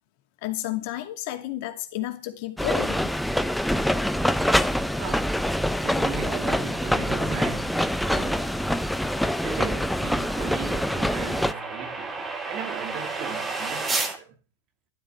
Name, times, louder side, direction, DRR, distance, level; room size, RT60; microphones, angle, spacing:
voice 1, 0.4-3.1, left 14 dB, 50° left, 2.5 m, -31 dB
sound 1, 2.6-11.5, equal, ahead, 0.7 m, -25 dB
voice 2, 5.0-5.5 5.8-8.6 9.4-14.4, right 8 dB, 35° right, 2.1 m, -37 dB
sound 2, 6.3-14.2, right 3 dB, 15° right, 2.1 m, -35 dB
12.5 x 12.5 x 4.8 m
figure-of-eight pair, 100°, 0 cm